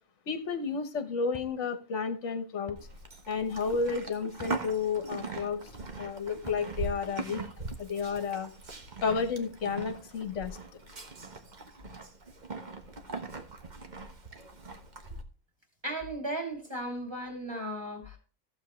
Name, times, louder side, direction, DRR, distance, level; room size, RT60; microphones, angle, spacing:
voice 1, 0.3-2.8 3.3-5.6 6.0-7.4 7.8-8.5 9.0-10.6, left 5 dB, 65° left, 1.5 m, -31 dB
sound 1, 1.3-1.5 2.7-2.8 4.3-4.6 6.3-6.7, left 3 dB, 25° left, 0.8 m, -47 dB
Livestock farm animals working animals, 2.8-15.2, right 3 dB, 35° right, 1.3 m, -41 dB
voice 2, 15.8-18.2, right 1 dB, 20° right, 3.0 m, -36 dB
14.5 x 7.4 x 3.2 m
omnidirectional pair, 1.4 m